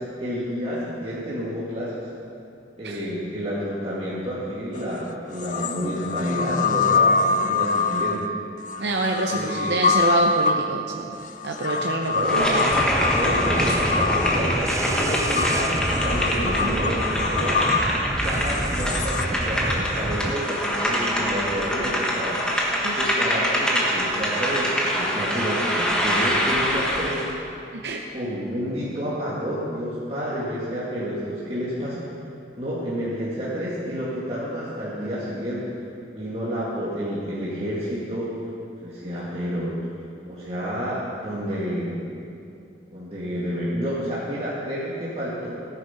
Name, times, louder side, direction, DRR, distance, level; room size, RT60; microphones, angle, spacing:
voice 1, 0.0-1.9 2.8-8.3 9.3-9.9 12.1-12.5 13.1-17.6 18.2-22.4 22.9-27.6 28.1-32.0 32.6-35.7 36.1-38.3 38.8-39.8 40.3-42.0 42.9-45.5, equal, 35° right, -9 dB, 1.9 m, -29 dB
sound 1, 4.7-4.8 5.4-19.3, left 4 dB, 45° left, 0.4 m, -25 dB
voice 2, 8.8-11.1 11.4-12.7 13.7-13.8 16.5-16.7 22.8-23.0 27.7-28.0, right 2 dB, 75° right, 1 dB, 0.8 m, -27 dB
sound 2, 12.2-27.3, equal, 5° left, 1.5 m, -25 dB
sound 3, 12.7-20.3, right 2 dB, 20° right, 0.4 m, -29 dB
15.5 x 9.3 x 5.7 m, 2.6 s
head